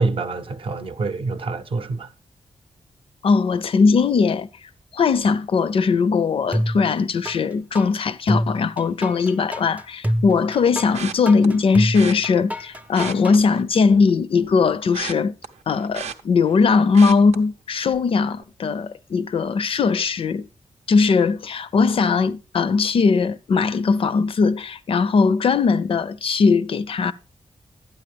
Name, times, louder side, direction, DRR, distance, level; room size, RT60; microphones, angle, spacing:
voice 1, 0.0-2.1, right 3 dB, 55° right, 0.6 m, -26 dB
voice 2, 3.2-4.5 4.9-15.3 15.7-20.4 20.9-27.1, left 5 dB, 55° left, 0.4 m, -19 dB
sound 1, 6.5-7.4 7.7-13.4, equal, 15° right, 0.4 m, -26 dB
sound 2, 10.9-11.5 11.9-12.2 12.8-14.1 14.4-16.6 16.9-17.4 17.8-18.1 18.4-18.5, right 7 dB, 90° right, 0.7 m, -34 dB
11.5 x 9.0 x 3.3 m
wide cardioid pair, 115°, 11 cm